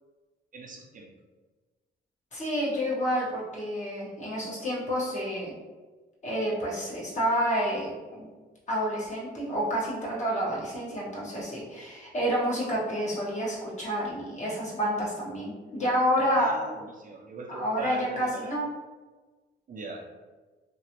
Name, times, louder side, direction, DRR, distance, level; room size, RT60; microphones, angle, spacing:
voice 1, 0.5-1.1 16.2-18.5 19.7-20.0, right 2 dB, 45° right, -1 dB, 0.6 m, -40 dB
voice 2, 2.3-5.5 6.2-8.3 8.7-16.5 17.5-18.7, equal, 35° left, -5 dB, 1.3 m, -29 dB
2.9 x 2.7 x 2.9 m, 1.3 s
cardioid pair, 90°, 20 cm